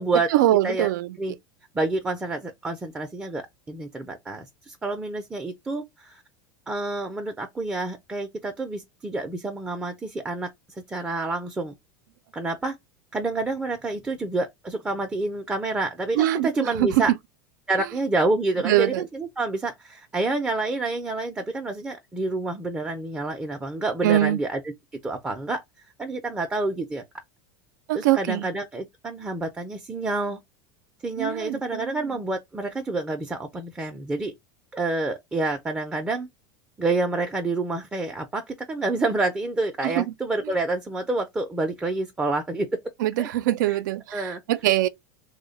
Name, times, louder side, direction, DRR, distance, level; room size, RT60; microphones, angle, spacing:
voice 1, 0.3-1.4 16.2-17.0 18.6-19.1 24.0-24.4 27.9-28.5 31.2-32.1 39.8-40.1 43.0-44.9, right 14 dB, 85° right, 0.4 m, -23 dB
voice 2, 1.7-6.2 6.7-10.5 10.9-11.7 12.3-12.8 13.1-17.1 17.7-24.6 25.0-25.6 26.0-27.0 27.9-30.4 31.0-34.3 34.7-36.3 36.8-42.8 43.2-43.3 43.7-43.8 44.1-44.4, right 2 dB, 10° right, 0.4 m, -28 dB
3.0 x 2.1 x 3.8 m
supercardioid pair, 145°, 10 cm